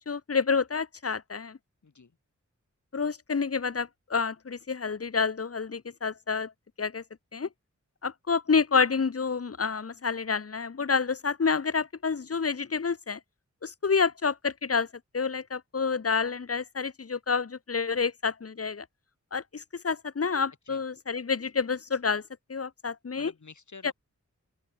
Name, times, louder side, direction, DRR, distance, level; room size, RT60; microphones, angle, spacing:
voice 1, 0.0-1.6 2.9-6.5 6.8-7.0 7.3-7.5 8.0-13.2 13.6-14.9 15.1-18.8 19.3-22.2 22.5-23.3 23.8-23.9, left 5 dB, 50° left, 1.2 m, -28 dB
voice 2, 1.8-2.2 20.7-20.8 23.2-23.9, left 4 dB, 70° left, 5.9 m, -48 dB
open air
wide cardioid pair, 60°, 30 cm